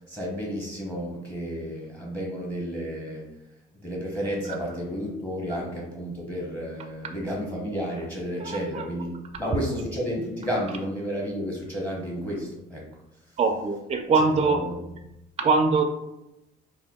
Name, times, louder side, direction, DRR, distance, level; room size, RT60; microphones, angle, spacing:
voice 1, 0.1-3.3 3.8-12.9 14.4-14.8, equal, 10° left, -2 dB, 0.8 m, -32 dB
voice 2, 8.4-8.9 13.4-14.9 15.4-15.8, right 4 dB, 30° right, 5 dB, 0.4 m, -23 dB
2.8 x 2.1 x 3.5 m, 0.90 s
cardioid pair, 90°, 20 cm